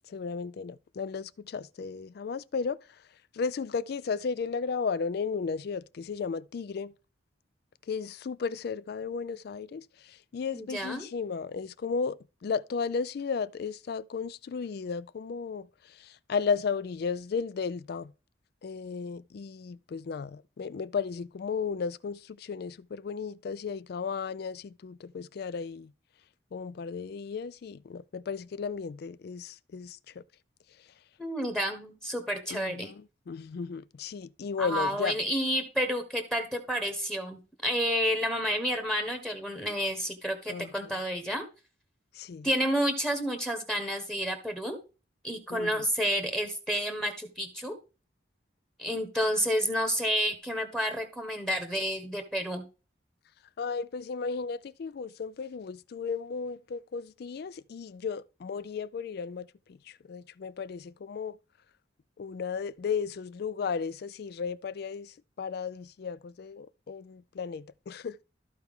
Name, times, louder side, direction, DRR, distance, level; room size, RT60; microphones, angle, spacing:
voice 1, 0.0-2.8 3.3-6.9 7.9-12.2 12.4-18.1 18.6-25.9 26.5-30.2 32.5-35.2 40.5-41.0 42.1-42.5 45.5-45.8 53.6-61.4 62.2-68.2, left 5 dB, 55° left, 0.3 m, -34 dB
voice 2, 10.5-11.0 31.2-32.9 34.6-41.4 42.4-44.8 45.2-47.7 48.8-52.6, equal, 5° left, 1.1 m, -30 dB
13.5 x 4.6 x 3.6 m
head